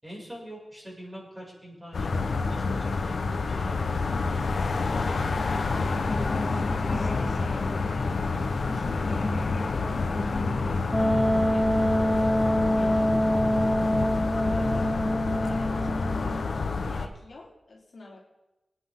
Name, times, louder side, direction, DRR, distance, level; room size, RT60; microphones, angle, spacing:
voice 1, 0.0-2.2 2.5-3.8 4.3-5.5, equal, 15° right, -4 dB, 6.2 m, -44 dB
sound 1, 1.9-17.1, left 4 dB, 85° left, 1.0 m, -28 dB
sound 2, 4.3-10.8, left 2 dB, 45° left, 1.4 m, -35 dB
voice 2, 6.1-15.0 15.4-18.2, left 3 dB, 65° left, -3 dB, 3.4 m, -47 dB
Wind instrument woodwind instrument, 10.9-16.4, equal, 5° left, 0.8 m, -25 dB
24.0 x 9.9 x 3.7 m, 0.98 s
wide cardioid pair, 110°, 0 cm